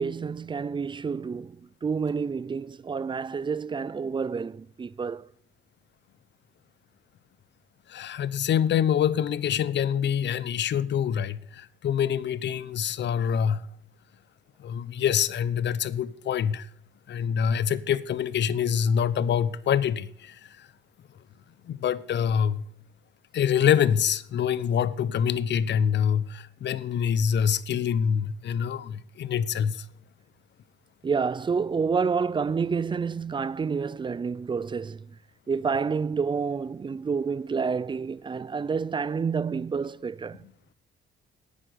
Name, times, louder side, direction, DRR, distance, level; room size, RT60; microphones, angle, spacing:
voice 1, 0.0-5.3 31.0-35.1 35.5-40.5, right 5 dB, 25° right, 0.4 m, -29 dB
voice 2, 7.9-13.6 14.6-16.7 17.1-20.7 21.6-22.6 23.3-29.9, left 8 dB, 60° left, 0.9 m, -25 dB
10.0 x 9.1 x 6.8 m
cardioid pair, 90°, 20 cm